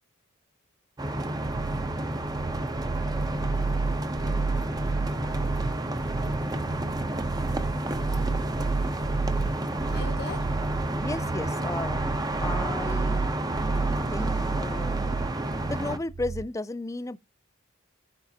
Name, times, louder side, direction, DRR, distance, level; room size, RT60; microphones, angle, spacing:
sound 1, 1.0-16.0, right 1 dB, 20° right, 0.7 m, -30 dB
sound 2, 1.4-16.5, right 4 dB, 50° right, 0.4 m, -31 dB
voice 1, 7.8-7.9, left 3 dB, 45° left, 0.9 m, -46 dB
voice 2, 11.0-12.0 12.4-13.3 14.1-15.0 15.7-17.2, left 2 dB, 15° left, 0.4 m, -34 dB
14.5 x 5.3 x 2.8 m
head